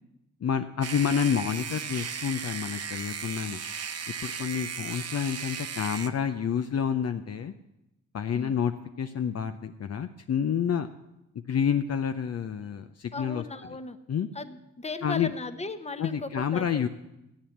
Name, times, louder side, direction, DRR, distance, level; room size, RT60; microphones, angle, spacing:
voice 1, 0.4-3.6 4.2-7.5 8.1-10.9 11.5-13.4 13.7-13.8 14.1-14.3 15.0-15.3 16.0-16.9, left 7 dB, 45° left, 8 dB, 0.6 m, -29 dB
sound 1, 0.8-6.1, right 6 dB, 45° right, 0.9 m, -36 dB
voice 2, 13.1-14.0 14.3-16.9, left 3 dB, 20° left, 10 dB, 1.0 m, -37 dB
14.5 x 8.6 x 7.2 m, 0.92 s
cardioid pair, 75°, 34 cm